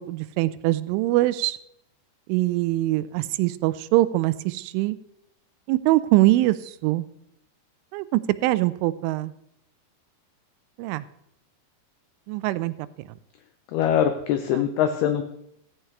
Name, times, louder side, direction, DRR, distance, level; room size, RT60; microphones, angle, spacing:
voice 1, 0.0-1.6 2.3-5.0 5.7-7.1 7.9-9.3 10.8-11.1 12.3-12.7 14.5-14.6, right 17 dB, 90° right, 15 dB, 3.1 m, -23 dB
voice 2, 13.7-15.2, left 9 dB, 85° left, 8 dB, 2.2 m, -23 dB
15.0 x 15.0 x 3.3 m, 0.78 s
omnidirectional pair, 5.5 m